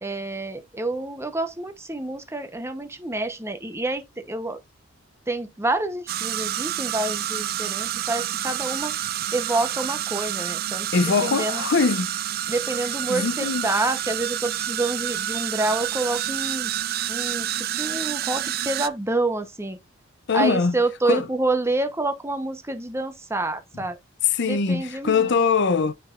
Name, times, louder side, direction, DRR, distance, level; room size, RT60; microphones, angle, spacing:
voice 1, 0.0-4.6 5.3-8.9 9.3-10.9 11.2-11.6 12.5-16.7 17.1-19.8 20.3-24.0 24.4-25.2, right 2 dB, 15° right, 0.9 m, -28 dB
sound 1, 6.1-18.9, right 12 dB, 50° right, 0.4 m, -28 dB
voice 2, 10.9-12.1 12.8-13.7 20.3-20.8 21.0-21.3 23.7-23.9 24.2-25.9, left 5 dB, 60° left, 0.6 m, -22 dB
9.5 x 4.6 x 2.5 m
head